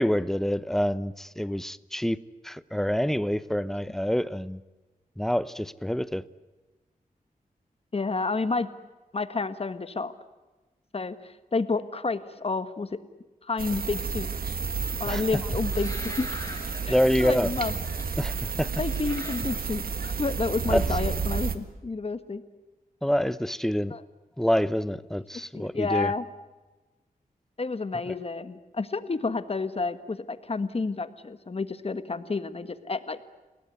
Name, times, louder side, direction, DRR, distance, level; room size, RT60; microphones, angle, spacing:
voice 1, 0.0-2.2 2.4-4.6 5.2-6.2 15.1-15.2 16.9-17.5 18.2-18.7 20.7-20.8 23.0-23.9 24.4-26.1 28.1-28.2, equal, 5° left, 16 dB, 0.9 m, -26 dB
voice 2, 7.9-8.7 9.1-10.1 10.9-12.9 13.4-14.3 15.0-16.4 16.8-17.8 18.8-22.4 23.9-24.0 25.5-26.2 27.6-33.2, left 3 dB, 40° left, 11 dB, 1.6 m, -30 dB
sound 1, 13.6-21.6, right 5 dB, 85° right, 1.8 m, -31 dB
sound 2, 14.1-20.4, left 2 dB, 20° left, 4.9 m, -43 dB
30.0 x 18.5 x 9.5 m, 1.2 s
wide cardioid pair, 105°, 15 cm